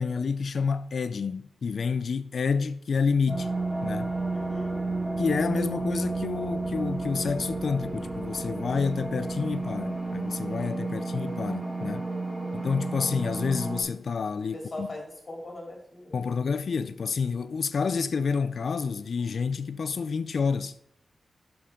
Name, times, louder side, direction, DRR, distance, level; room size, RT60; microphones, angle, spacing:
voice 1, 0.0-3.5 3.8-4.1 5.2-12.0 12.5-14.9 16.1-20.7, left 5 dB, 65° left, 0.4 m, -29 dB
sound 1, 3.3-13.8, right 3 dB, 20° right, 1.8 m, -31 dB
voice 2, 4.3-4.7 11.8-11.9 12.4-12.6 14.5-16.1, left 1 dB, 40° left, 2.8 m, -40 dB
11.5 x 5.9 x 3.7 m
wide cardioid pair, 115°, 0 cm